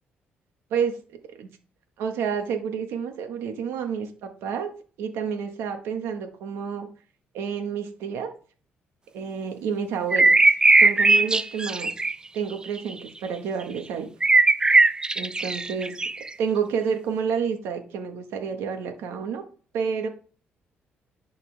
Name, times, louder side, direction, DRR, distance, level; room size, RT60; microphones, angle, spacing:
voice 1, 2.0-4.7 5.0-6.9 7.3-8.3 9.1-10.3 10.8-11.9 12.3-14.1 15.1-15.9 16.4-19.4 19.7-20.1, right 6 dB, 90° right, 5 dB, 1.5 m, -29 dB
sound 1, 10.1-12.1 12.8-12.9 14.2-16.3, right 3 dB, 20° right, 0.4 m, -18 dB
11.0 x 4.3 x 3.5 m, 0.39 s
cardioid pair, 85°, 4 cm